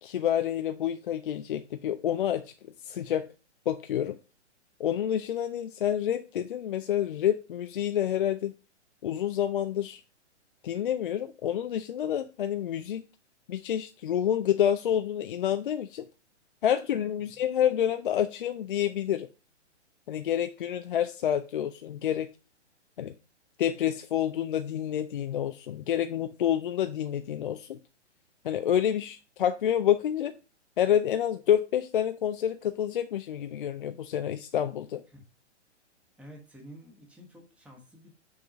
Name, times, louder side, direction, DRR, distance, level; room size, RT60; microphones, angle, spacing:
voice 1, 0.0-2.5 2.8-3.3 3.7-4.2 4.8-8.5 9.0-10.0 10.6-13.0 13.5-16.0 16.6-19.3 20.1-22.3 23.0-23.1 23.6-27.8 28.4-30.3 30.8-35.0, left 10 dB, 45° left, 8 dB, 0.4 m, -28 dB
voice 2, 36.2-38.1, equal, 5° right, 1 dB, 1.3 m, -50 dB
6.0 x 3.6 x 5.1 m, 0.32 s
figure-of-eight pair, 120°, 36 cm